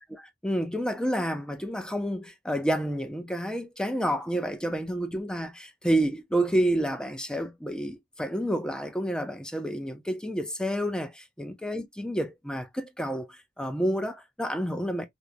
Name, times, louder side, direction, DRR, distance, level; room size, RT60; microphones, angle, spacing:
voice 1, 0.1-15.1, right 1 dB, 5° left, 0.4 m, -29 dB
2.9 x 2.0 x 2.3 m
head